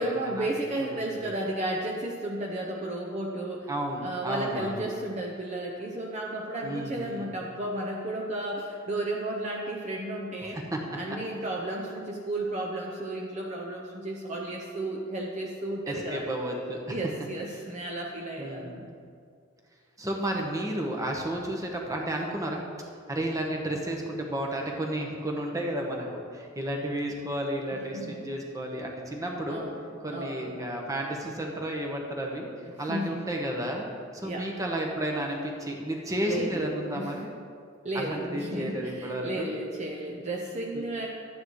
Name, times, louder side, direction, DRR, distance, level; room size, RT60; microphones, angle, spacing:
voice 1, 0.0-3.7 4.0-10.6 11.0-16.2 16.9-18.7 27.7-28.2 29.5-29.8 30.1-30.6 32.9-33.2 34.2-34.5 36.2-37.1 37.8-41.1, right 1 dB, 35° right, -2 dB, 0.8 m, -33 dB
voice 2, 3.7-4.9 6.6-7.3 10.5-10.8 15.9-17.0 18.4-18.9 20.0-22.6 23.1-29.7 30.0-32.5 32.8-37.3 37.9-39.5 40.7-40.8, right 1 dB, 15° right, 0 dB, 1.1 m, -32 dB
12.5 x 9.3 x 3.2 m, 2.3 s
head